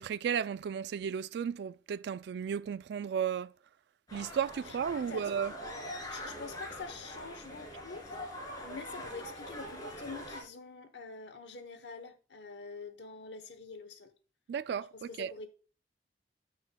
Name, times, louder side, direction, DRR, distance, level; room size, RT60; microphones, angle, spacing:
voice 1, 0.0-3.5 4.1-5.5 14.5-15.3, right 7 dB, 65° right, 0.3 m, -34 dB
sound 1, 4.1-10.4, equal, 20° left, 2.8 m, -43 dB
voice 2, 4.6-5.3 6.1-8.2 8.6-14.1 14.9-15.5, left 4 dB, 75° left, 1.0 m, -46 dB
13.0 x 6.2 x 2.2 m
head